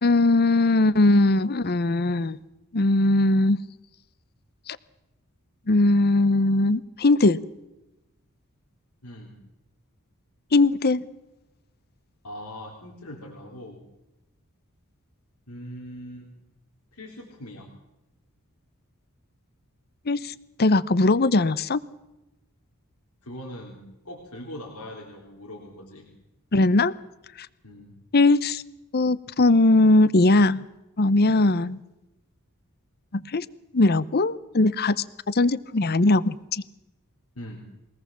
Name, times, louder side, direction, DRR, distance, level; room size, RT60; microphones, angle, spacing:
voice 1, 0.0-2.4 2.7-3.6 4.7-4.8 5.7-7.4 10.5-11.0 20.1-20.3 20.6-21.8 26.5-26.9 28.1-28.6 28.9-30.6 31.0-31.8 33.1-33.5 33.7-36.6, left 2 dB, 45° left, 18 dB, 0.7 m, -20 dB
voice 2, 9.0-9.4 12.2-13.8 15.5-16.3 16.9-17.7 23.2-26.1 27.6-27.9 37.4-37.6, left 1 dB, 90° left, -2 dB, 3.7 m, -41 dB
23.0 x 18.5 x 7.4 m, 0.95 s
head